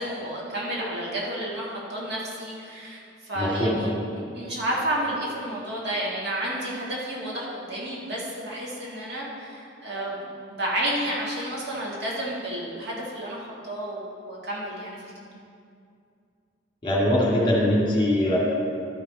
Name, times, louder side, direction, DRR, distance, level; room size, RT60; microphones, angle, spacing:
voice 1, 0.0-3.9 4.3-15.3, right 1 dB, 60° right, -5 dB, 1.9 m, -31 dB
voice 2, 3.4-3.9 16.8-18.4, left 1 dB, 25° left, -5 dB, 2.2 m, -22 dB
12.0 x 5.9 x 4.2 m, 2.4 s
head